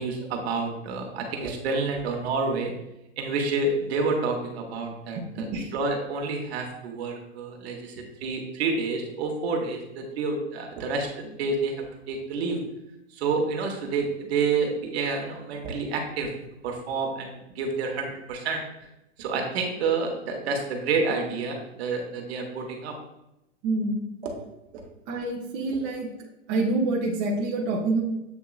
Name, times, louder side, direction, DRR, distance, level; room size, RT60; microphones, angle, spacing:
voice 1, 0.0-2.7 3.2-5.5 5.7-7.9 8.2-12.6 13.1-16.3 16.6-18.6 19.2-22.9 24.2-24.3 24.7-24.8, right 4 dB, 55° right, 2 dB, 1.3 m, -29 dB
voice 2, 5.1-5.7 23.6-24.0 25.1-26.1 26.5-28.0, right 2 dB, 30° right, -3 dB, 0.9 m, -27 dB
8.0 x 2.8 x 2.4 m, 0.88 s
hypercardioid pair, 130°, 37 cm